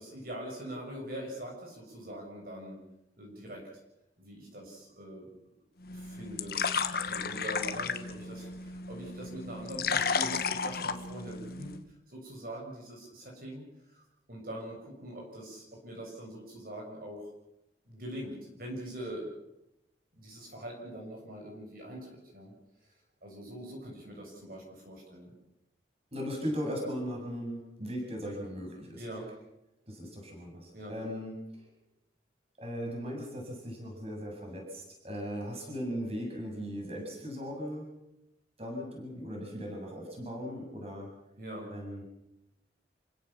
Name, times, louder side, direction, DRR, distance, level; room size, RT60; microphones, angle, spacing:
voice 1, 0.0-2.8 3.2-3.6 4.2-5.3 5.9-6.6 7.0-11.7 12.1-13.6 13.9-14.0 14.3-17.3 17.9-19.3 20.1-22.5 22.8-22.9 23.2-25.3 29.0-29.3 30.7-30.9 41.4-41.7, right 1 dB, 50° right, -1 dB, 7.1 m, -43 dB
sound 1, 5.8-11.8, left 5 dB, 55° left, 1.4 m, -33 dB
voice 2, 26.1-29.0 29.9-31.7 32.6-37.9 38.6-41.1 41.7-42.0, equal, 35° right, 0 dB, 7.7 m, -38 dB
29.0 x 16.5 x 7.3 m, 0.88 s
head